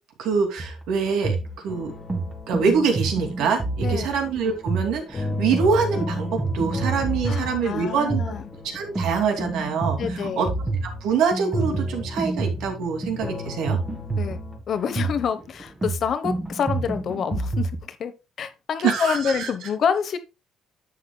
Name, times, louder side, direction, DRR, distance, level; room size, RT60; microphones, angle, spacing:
voice 1, 0.2-1.4 1.6-1.9 2.5-8.3 8.6-10.5 10.8-13.8 18.8-19.5, right 6 dB, 75° right, 2.6 m, -25 dB
sound 1, 0.6-17.8, right 3 dB, 15° right, 1.7 m, -29 dB
sound 2, 1.7-14.6, left 3 dB, 25° left, 1.9 m, -36 dB
voice 2, 3.8-4.2 7.2-8.5 10.0-10.5 14.2-14.4 14.7-18.1 18.4-20.2, left 7 dB, 45° left, 1.0 m, -27 dB
11.0 x 7.8 x 2.3 m
cardioid pair, 150°, 0 cm